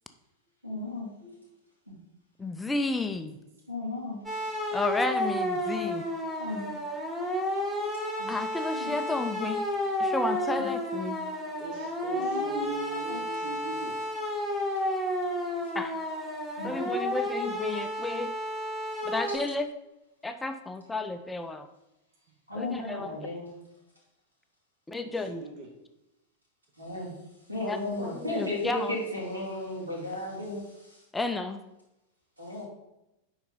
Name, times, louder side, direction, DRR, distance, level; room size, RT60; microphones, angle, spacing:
voice 1, 0.6-1.3 1.9-2.0 3.7-4.2 5.8-6.0 6.4-6.6 8.2-8.3 8.7-9.2 10.5-10.7 11.4-11.8 12.1-12.6 13.1-13.2 15.6-15.7 16.6-16.7 22.5-23.5 26.8-27.1 27.5-31.0 32.4-32.6, left 2 dB, 80° right, -3 dB, 2.6 m, -35 dB
voice 2, 2.4-3.3 4.7-6.1 8.3-9.7 10.0-11.2 15.7-15.9 16.6-18.3 19.1-19.7 20.2-21.7 22.6-23.1 24.9-25.4 27.6-28.9 31.1-31.6, left 3 dB, 10° left, 7 dB, 0.5 m, -32 dB
sound 1, 4.3-19.4, equal, 10° right, 1.4 m, -31 dB
voice 3, 11.6-14.0 25.0-25.7, right 3 dB, 40° right, 3 dB, 1.0 m, -40 dB
10.0 x 4.0 x 3.8 m, 0.91 s
figure-of-eight pair, 90°, 0 cm